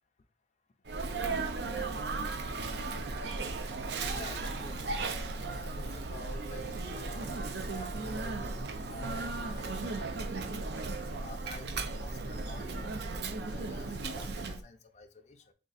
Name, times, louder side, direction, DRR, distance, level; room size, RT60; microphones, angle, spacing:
Sneeze, 0.9-14.6, right 3 dB, 60° right, 0.5 m, -36 dB
voice 1, 4.1-5.1 5.5-10.7 11.2-13.2 13.5-15.5, left 2 dB, 35° left, 5 dB, 0.4 m, -50 dB
3.7 x 2.4 x 3.9 m, 0.34 s
head